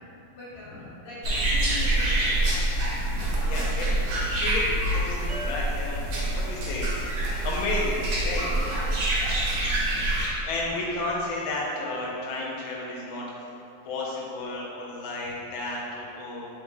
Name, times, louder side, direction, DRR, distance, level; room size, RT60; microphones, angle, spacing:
voice 1, 0.3-4.2 8.5-9.9, left 2 dB, 60° left, -7 dB, 1.3 m, -42 dB
sound 1, 1.2-10.3, right 1 dB, 90° right, 1.7 m, -26 dB
voice 2, 3.0-3.9 4.3-7.0 7.4-8.5 9.2-9.3 9.9-10.0 10.4-13.2 13.8-16.5, left 2 dB, 85° left, -3 dB, 1.5 m, -32 dB
sound 2, 5.3-8.7, left 1 dB, 45° right, 1.1 m, -44 dB
3.9 x 3.4 x 3.3 m, 2.7 s
omnidirectional pair, 2.1 m